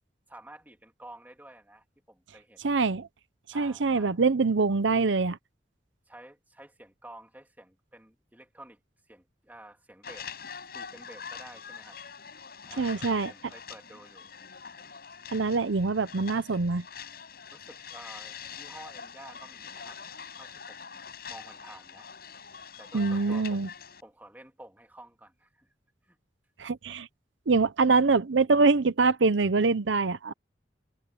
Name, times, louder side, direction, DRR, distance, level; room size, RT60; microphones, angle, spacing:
voice 1, 0.3-2.7 3.5-4.2 6.1-8.8 9.1-10.3 10.7-12.0 12.6-14.3 17.5-20.0 20.3-22.1 22.8-23.7 24.0-25.7 26.0-26.2, right 1 dB, 10° right, 2.9 m, -51 dB
voice 2, 2.6-3.1 3.5-5.4 12.8-13.3 15.3-16.8 22.9-23.7 26.6-27.1 27.5-30.3, right 4 dB, 85° right, 0.7 m, -24 dB
sound 1, 10.0-24.0, left 6 dB, 55° left, 6.5 m, -44 dB
head